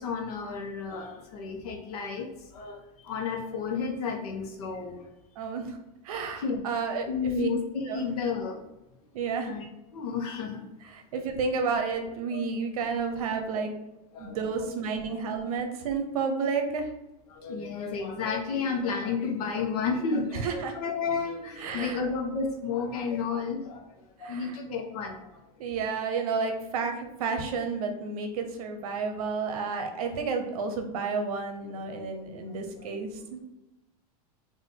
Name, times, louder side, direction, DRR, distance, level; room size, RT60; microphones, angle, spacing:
voice 1, 0.0-2.3 2.5-5.0 6.4-6.7 7.1-8.6 9.4-10.6 12.3-12.4 14.1-14.6 15.1-15.2 17.3-23.8 24.2-25.2 32.3-32.9, left 5 dB, 75° left, 2 dB, 1.0 m, -32 dB
voice 2, 5.4-5.8 6.0-7.5 7.9-8.1 9.1-9.5 11.1-13.7 14.2-16.9 20.3-20.7 21.6-22.0 24.2-24.6 25.6-33.4, right 5 dB, 70° right, 5 dB, 0.8 m, -31 dB
3.8 x 2.6 x 3.8 m, 0.94 s
supercardioid pair, 170°, 20 cm